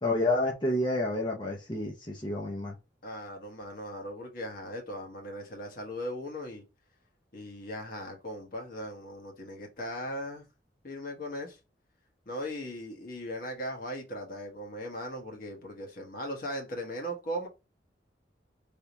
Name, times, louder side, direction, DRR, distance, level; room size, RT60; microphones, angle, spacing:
voice 1, 0.0-2.7, left 2 dB, 25° left, 0.8 m, -29 dB
voice 2, 3.0-6.6 7.3-10.4 10.8-11.6 12.3-17.5, equal, 55° left, 1.2 m, -38 dB
3.5 x 2.8 x 2.9 m
head